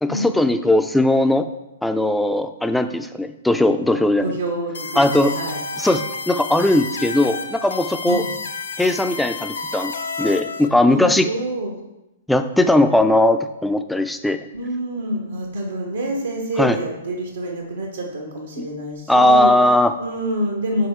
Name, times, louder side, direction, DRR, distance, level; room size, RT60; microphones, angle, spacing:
voice 1, 0.0-1.5 1.8-4.3 5.0-5.3 5.8-8.2 8.8-11.3 12.3-14.5 16.6-16.8 18.6-18.7 19.1-19.9, left 1 dB, 5° left, 8 dB, 0.4 m, -18 dB
voice 2, 4.2-5.6 8.0-8.3 10.9-11.8 14.5-19.5 20.0-20.9, right 1 dB, 80° right, 0 dB, 1.1 m, -27 dB
sound 1, 4.7-10.7, left 4 dB, 70° left, 0.5 m, -30 dB
6.6 x 4.1 x 4.5 m, 0.95 s
figure-of-eight pair, 115°, 0 cm